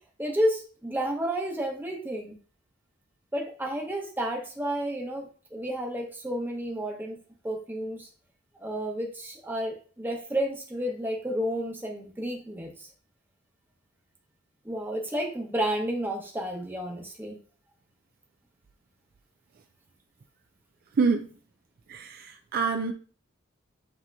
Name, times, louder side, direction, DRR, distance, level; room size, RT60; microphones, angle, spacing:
voice 1, 0.2-2.4 3.3-7.2 7.4-8.1 8.6-12.9 14.6-17.4, right 1 dB, 10° right, 0.9 m, -31 dB
voice 2, 20.9-21.3 21.9-22.9, right 4 dB, 45° right, 0.3 m, -26 dB
8.2 x 2.9 x 2.2 m
head